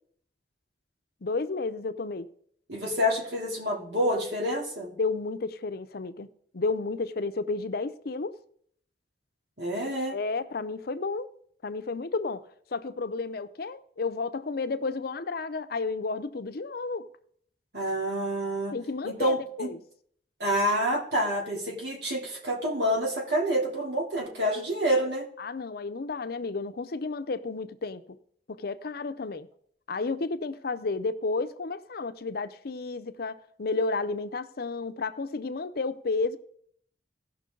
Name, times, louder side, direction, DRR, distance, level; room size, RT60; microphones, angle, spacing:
voice 1, 1.2-2.3 5.0-6.3 6.5-8.3 10.1-11.3 11.6-12.4 12.7-17.1 18.7-19.8 25.4-28.0 28.5-29.5 29.9-36.4, left 3 dB, 60° left, 0.6 m, -32 dB
voice 2, 2.7-4.9 9.6-10.2 17.7-18.8 19.0-19.7 20.4-25.2, equal, 70° right, 3.1 m, -28 dB
17.0 x 6.0 x 3.8 m
head